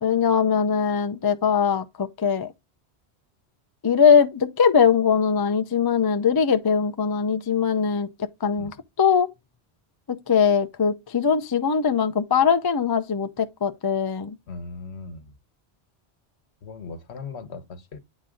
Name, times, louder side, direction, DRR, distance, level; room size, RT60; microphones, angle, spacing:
voice 1, 0.0-2.5 3.8-8.7 9.0-9.3 10.1-14.4, left 6 dB, 30° left, 0.4 m, -21 dB
voice 2, 14.5-15.3 16.6-18.0, left 4 dB, 75° left, 1.2 m, -38 dB
9.1 x 3.9 x 3.7 m
omnidirectional pair, 1.1 m